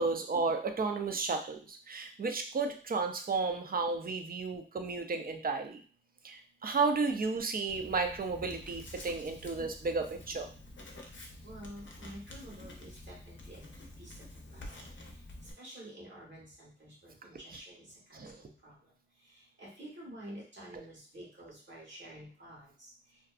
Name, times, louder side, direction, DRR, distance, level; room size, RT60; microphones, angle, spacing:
voice 1, 0.0-5.8 6.2-10.5 18.1-18.3, right 4 dB, 50° right, 5 dB, 0.4 m, -33 dB
Writing, 7.7-15.5, left 1 dB, 75° left, 0.5 m, -49 dB
voice 2, 11.4-13.6 14.0-14.1 14.5-14.6 15.6-18.8 19.3-22.9, right 1 dB, 75° right, -5 dB, 1.3 m, -49 dB
2.6 x 2.3 x 2.3 m, 0.40 s
wide cardioid pair, 45°, 19 cm